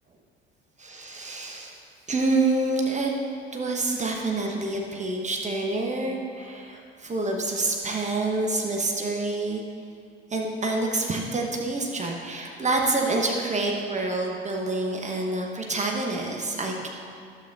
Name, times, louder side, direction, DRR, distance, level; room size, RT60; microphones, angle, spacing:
voice 1, 0.8-1.7 2.1-3.1 3.5-9.6 10.3-16.9, right 2 dB, 20° right, 0 dB, 1.0 m, -27 dB
12.5 x 7.8 x 2.7 m, 2.4 s
figure-of-eight pair, 60°, 32 cm